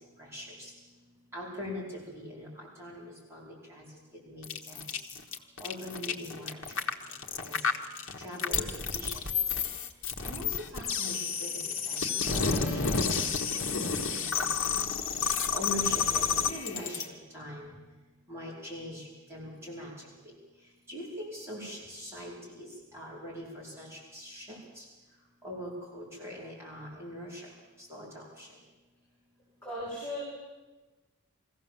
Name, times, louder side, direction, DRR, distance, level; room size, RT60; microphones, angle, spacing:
voice 1, 0.2-0.7 1.3-3.8 4.3-4.8 5.6-6.9 7.4-7.6 8.2-9.2 10.2-11.5 11.9-12.0 12.3-12.8 13.1-13.9 14.1-14.5 15.5-17.7 18.3-19.9 20.9-24.8 25.4-27.5 27.9-28.5, left 1 dB, 10° right, -6 dB, 5.1 m, -42 dB
sound 1, 4.4-17.0, left 6 dB, 60° left, 1.4 m, -30 dB
voice 2, 29.6-30.2, equal, 10° left, -10 dB, 7.5 m, -36 dB
22.5 x 16.0 x 7.4 m, 1.2 s
head